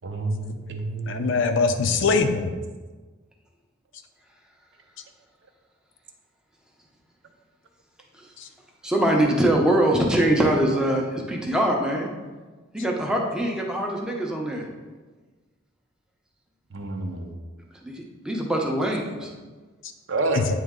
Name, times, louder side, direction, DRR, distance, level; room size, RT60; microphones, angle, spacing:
voice 1, 0.0-1.4 16.7-17.3 20.1-20.5, right 2 dB, 65° right, 4 dB, 0.7 m, -29 dB
voice 2, 1.1-2.5 8.4-8.5 11.2-11.3 12.2-12.3 13.8-13.9 14.2-14.3 20.3-20.4, left 4 dB, 65° left, 7 dB, 0.5 m, -23 dB
voice 3, 8.8-12.1 12.7-14.6 17.8-19.3, right 1 dB, 5° right, -1 dB, 0.7 m, -23 dB
8.9 x 3.1 x 3.7 m, 1.3 s
head